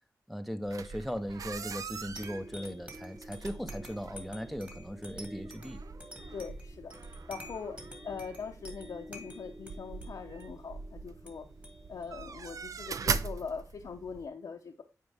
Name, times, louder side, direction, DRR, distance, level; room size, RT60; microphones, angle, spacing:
voice 1, 0.3-5.8, equal, ahead, 0.6 m, -38 dB
sound 1, 0.6-14.3, right 5 dB, 65° right, 0.5 m, -41 dB
sound 2, 2.2-13.2, equal, 25° right, 1.9 m, -49 dB
voice 2, 6.3-6.9 7.3-7.8 8.0-11.5 11.9-14.8, left 5 dB, 80° left, 0.7 m, -41 dB
9.3 x 4.5 x 3.4 m
wide cardioid pair, 110°, 6 cm